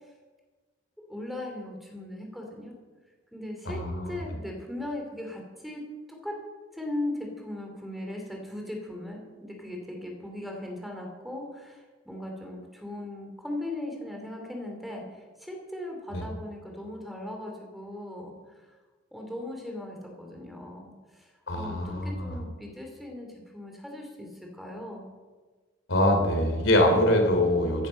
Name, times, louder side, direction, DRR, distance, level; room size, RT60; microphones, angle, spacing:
voice 1, 1.0-2.7 3.3-5.8 6.1-6.4 6.7-18.8 19.1-25.1, left 1 dB, ahead, 1 dB, 2.8 m, -38 dB
voice 2, 3.6-4.2 16.1-16.2 21.5-22.4 25.9-27.9, left 1 dB, 75° left, 3 dB, 3.4 m, -24 dB
16.0 x 10.5 x 6.5 m, 1.3 s
head